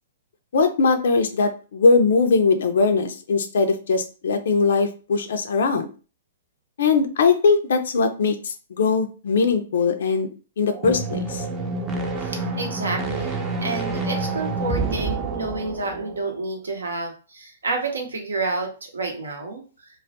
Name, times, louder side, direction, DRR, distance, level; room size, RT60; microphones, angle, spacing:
voice 1, 0.5-5.9 6.8-10.3 10.6-11.4, left 4 dB, 65° left, 8 dB, 0.4 m, -20 dB
sound 1, 10.7-16.4, right 3 dB, 20° right, 0.5 m, -28 dB
voice 2, 12.2-13.3 13.6-20.0, right 3 dB, 80° right, 4 dB, 0.6 m, -29 dB
2.2 x 2.0 x 2.7 m, 0.36 s
figure-of-eight pair, 115°, 0 cm